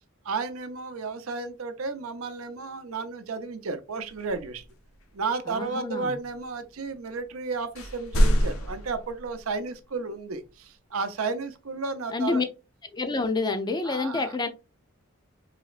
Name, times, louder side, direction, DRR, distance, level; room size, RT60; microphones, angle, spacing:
voice 1, 0.2-4.6 5.1-12.4 13.8-14.3, right 4 dB, 80° right, 0.6 m, -33 dB
sound 1, 4.1-5.2 6.1-6.9 7.2-7.3 7.6-9.5, equal, 85° left, 0.7 m, -27 dB
voice 2, 5.5-6.1 12.1-12.4 12.9-14.5, left 3 dB, 20° left, 0.4 m, -28 dB
4.1 x 3.0 x 2.4 m
head